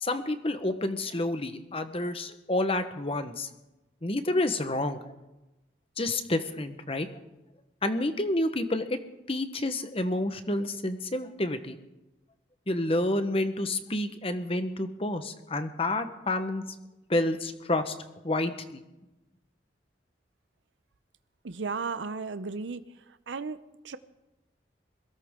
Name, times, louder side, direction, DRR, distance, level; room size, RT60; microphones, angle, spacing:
voice 1, 0.0-3.5 4.0-5.0 6.0-7.1 7.8-9.0 9.3-11.8 12.7-16.6 17.1-17.9 18.2-18.8, left 1 dB, 30° left, 9 dB, 1.1 m, -29 dB
voice 2, 21.4-22.8 23.3-23.6 23.8-24.0, right 4 dB, 75° right, 12 dB, 0.7 m, -34 dB
22.0 x 16.5 x 3.7 m, 1.0 s
head